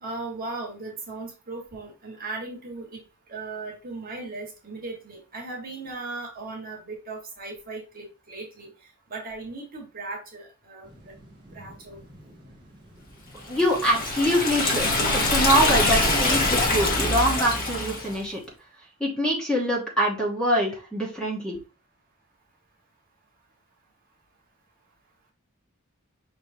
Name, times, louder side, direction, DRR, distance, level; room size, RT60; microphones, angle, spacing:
voice 1, 0.0-3.0 3.3-8.7 9.1-11.1 11.5-12.0, right 3 dB, 45° right, 0 dB, 1.3 m, -37 dB
sound 1, 10.8-17.1, equal, 20° right, 1.3 m, -43 dB
voice 2, 13.4-14.9 15.3-18.4 19.0-21.6, equal, 5° left, -3 dB, 1.0 m, -24 dB
Liquid, 13.5-18.2, left 2 dB, 45° left, 1.3 m, -24 dB
5.3 x 3.2 x 2.7 m, 0.33 s
head